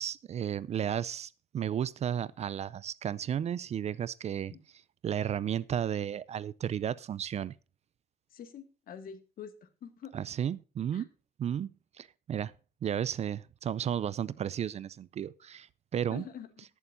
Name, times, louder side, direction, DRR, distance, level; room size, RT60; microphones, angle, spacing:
voice 1, 0.0-4.5 5.0-7.5 10.1-11.1 11.4-11.7 12.0-12.5 12.8-16.2, right 9 dB, 40° right, 0.4 m, -33 dB
voice 2, 8.3-10.1 10.9-11.1 16.1-16.6, left 7 dB, 60° left, 1.9 m, -46 dB
19.0 x 7.1 x 2.6 m
cardioid pair, 110°, 17 cm